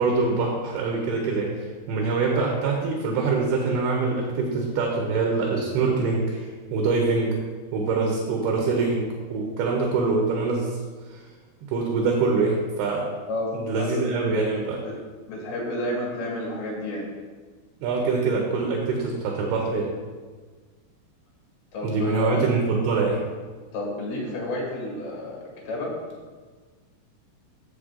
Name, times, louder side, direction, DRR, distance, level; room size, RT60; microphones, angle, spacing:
voice 1, 0.0-7.4 7.7-10.7 11.1-11.2 11.7-13.0 13.5-14.8 17.8-19.9 21.8-23.2, right 4 dB, 85° right, 0 dB, 3.0 m, -24 dB
voice 2, 13.8-14.3 14.8-15.0 15.3-17.1 21.7-22.5 23.7-25.9, left 1 dB, 75° left, -3 dB, 4.2 m, -30 dB
8.0 x 7.7 x 3.8 m, 1.4 s
omnidirectional pair, 4.5 m